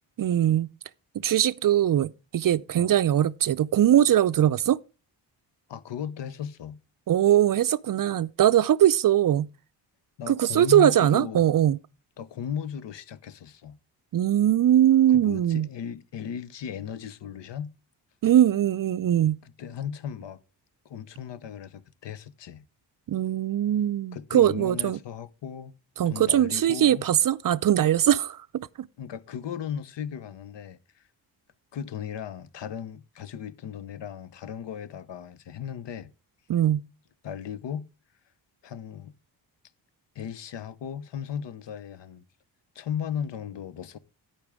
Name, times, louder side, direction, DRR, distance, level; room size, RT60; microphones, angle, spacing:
voice 1, 0.2-0.7 1.2-4.8 7.1-9.5 10.3-11.8 14.1-15.7 18.2-19.4 23.1-25.0 26.0-28.9 36.5-36.8, right 11 dB, 45° right, 0.5 m, -21 dB
voice 2, 5.7-6.8 10.2-11.5 12.2-13.8 15.1-17.7 19.4-20.4 20.8-22.6 24.1-25.8 26.0-27.0 29.0-31.0 31.7-36.1 37.2-37.9 38.6-39.1 40.1-42.2 42.7-44.0, left 8 dB, 60° left, 0.9 m, -36 dB
11.5 x 8.8 x 3.5 m
supercardioid pair, 50°, 48 cm